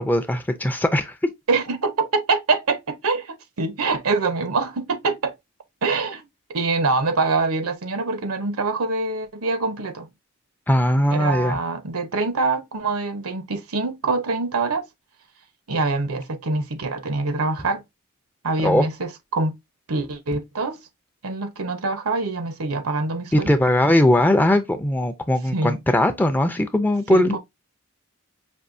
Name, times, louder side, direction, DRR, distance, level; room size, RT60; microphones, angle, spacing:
voice 1, 0.0-1.3 10.7-11.6 18.6-18.9 23.3-27.3, left 1 dB, 10° left, 0.5 m, -19 dB
voice 2, 1.5-5.4 5.8-10.1 11.1-14.9 15.7-17.8 18.4-19.5 19.9-20.8 21.2-23.5 25.5-25.8 27.1-27.4, right 3 dB, 80° right, 0.8 m, -25 dB
5.4 x 2.6 x 2.5 m
head